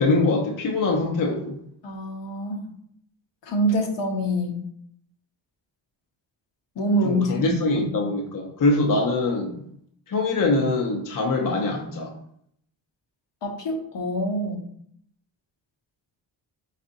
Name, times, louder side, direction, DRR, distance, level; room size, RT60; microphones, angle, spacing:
voice 1, 0.0-1.6 7.0-9.6 10.1-12.1, left 2 dB, 45° left, 2 dB, 0.7 m, -23 dB
voice 2, 1.8-2.7 3.5-4.6 6.8-8.1 13.4-14.6, equal, 65° left, 2 dB, 1.0 m, -26 dB
4.1 x 4.1 x 2.6 m, 0.68 s
cardioid pair, 75°, 46 cm